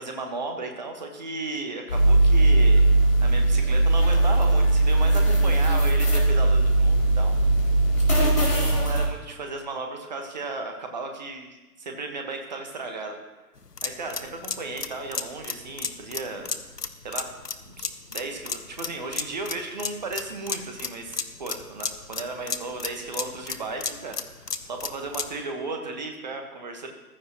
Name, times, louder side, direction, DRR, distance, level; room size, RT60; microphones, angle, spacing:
voice 1, 0.0-2.9 3.2-7.4 8.2-13.2 13.8-16.5 17.0-17.3 17.7-26.9, right 3 dB, 30° right, 4 dB, 1.4 m, -35 dB
sound 1, 1.9-9.1, right 2 dB, 55° left, 3.9 m, -19 dB
sound 2, 13.6-25.4, left 5 dB, 80° left, 1.1 m, -33 dB
15.0 x 13.5 x 3.0 m, 1.1 s
figure-of-eight pair, 145°, 47 cm